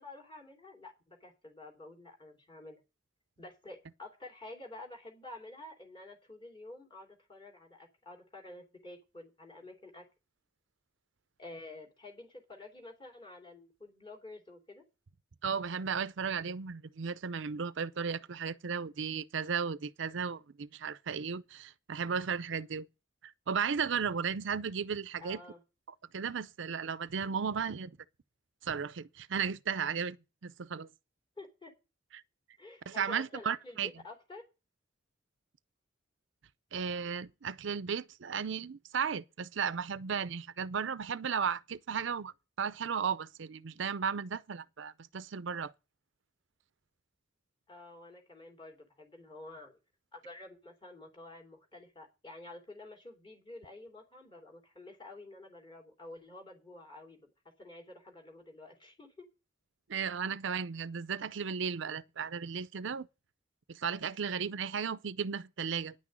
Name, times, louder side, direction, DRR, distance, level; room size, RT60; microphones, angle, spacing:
voice 1, 0.0-2.8 3.4-10.0 11.4-14.8 25.2-25.6 31.4-31.7 32.6-34.4 47.7-49.8 50.1-57.3 57.6-59.3, left 2 dB, 25° left, 3.1 m, -50 dB
voice 2, 15.4-22.9 23.2-25.4 26.1-28.0 28.6-30.2 30.4-30.9 32.1-32.2 32.9-33.9 36.7-45.7 59.9-63.1 63.7-65.9, right 6 dB, 70° right, 0.6 m, -35 dB
10.0 x 6.1 x 8.8 m
head